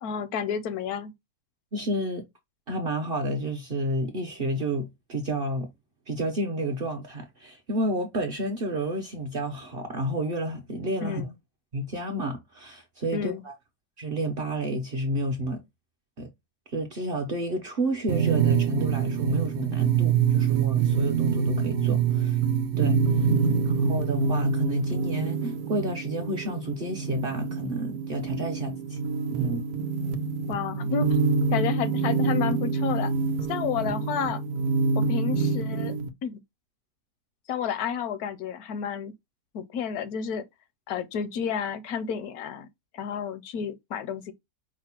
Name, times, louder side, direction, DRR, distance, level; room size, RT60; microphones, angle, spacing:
voice 1, 0.0-1.1 11.0-11.3 13.1-13.4 23.3-23.7 30.5-31.2 31.5-33.1 33.5-34.4 35.0-35.9 36.2-36.4 37.5-39.1 39.5-40.4 40.9-42.7 42.9-44.3, left 7 dB, 80° left, 1.1 m, -31 dB
voice 2, 1.7-2.2 2.7-5.7 6.1-11.3 11.7-13.5 14.0-15.6 16.2-16.3 16.7-22.4 22.8-23.3 23.6-29.0 29.3-29.6, right 1 dB, 55° right, 0.6 m, -30 dB
sound 1, 18.1-36.1, right 5 dB, 70° right, 1.0 m, -26 dB
4.9 x 2.1 x 4.3 m
omnidirectional pair, 1.7 m